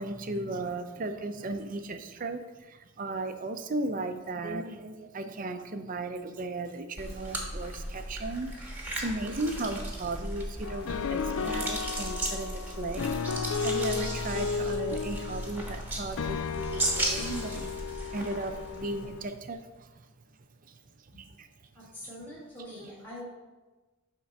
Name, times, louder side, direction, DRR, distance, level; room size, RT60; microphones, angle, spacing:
voice 1, 0.0-20.1 20.6-21.5 21.8-21.9 22.7-22.9, right 2 dB, 40° right, 8 dB, 0.5 m, -36 dB
sound 1, 7.0-19.2, right 1 dB, 10° right, 1.3 m, -36 dB
sound 2, 10.6-19.2, left 5 dB, 65° left, 0.4 m, -34 dB
voice 2, 21.7-23.2, left 1 dB, 10° left, -8 dB, 1.8 m, -44 dB
9.5 x 3.7 x 5.9 m, 1.2 s
head